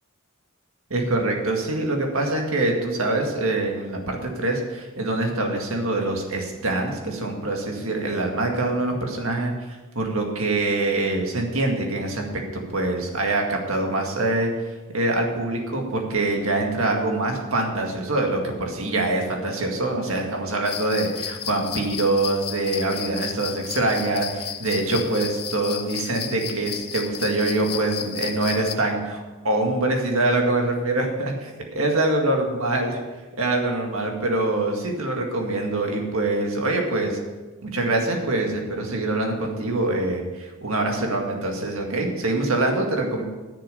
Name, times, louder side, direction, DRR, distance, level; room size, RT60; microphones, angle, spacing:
voice 1, 0.9-12.2 12.5-14.5 14.9-33.0 33.4-37.2 37.6-43.2, right 2 dB, 70° right, 2 dB, 2.0 m, -24 dB
sound 1, 20.6-28.7, left 10 dB, 45° left, 0.6 m, -33 dB
10.0 x 7.0 x 6.8 m, 1.2 s
head